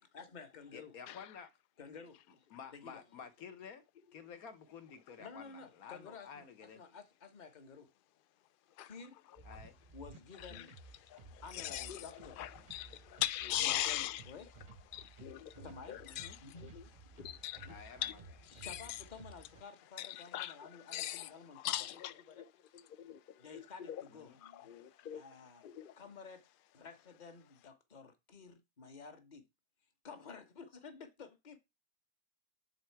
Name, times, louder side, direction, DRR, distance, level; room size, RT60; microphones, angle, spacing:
voice 1, 0.1-0.9 1.8-3.0 5.2-6.5 6.7-7.9 8.8-9.2 9.9-10.7 11.4-12.5 13.6-14.5 15.6-16.6 18.5-22.0 22.3-22.4 23.4-24.7 25.1-25.7 26.0-26.4 26.7-29.4 30.0-31.6, left 5 dB, 35° left, 1.1 m, -52 dB
voice 2, 0.7-1.5 2.5-3.8 4.1-6.8 9.4-9.8 16.0-16.4 17.7-18.2 24.1-24.4, left 7 dB, 70° left, 1.4 m, -51 dB
sound 1, 9.4-19.6, right 3 dB, 35° right, 0.6 m, -56 dB
voice 3, 11.0-12.0 12.4-14.2 14.9-16.8 17.2-18.1 18.5-18.8 20.0-22.5 23.0-24.0 24.4-25.2 25.6-26.0, left 13 dB, 85° left, 0.4 m, -41 dB
10.0 x 3.8 x 4.6 m
omnidirectional pair, 1.6 m